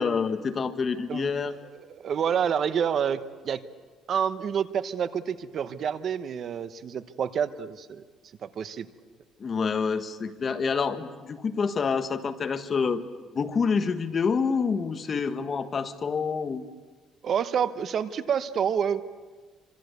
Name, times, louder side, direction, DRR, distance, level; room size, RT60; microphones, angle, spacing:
voice 1, 0.0-1.5 9.4-13.0 13.3-16.6, left 5 dB, 35° left, 9 dB, 1.5 m, -27 dB
voice 2, 1.1-3.6 4.1-8.0 8.4-8.9 17.2-19.0, right 8 dB, 45° right, 12 dB, 1.1 m, -28 dB
27.0 x 26.0 x 8.2 m, 1.4 s
cardioid pair, 135°, 0 cm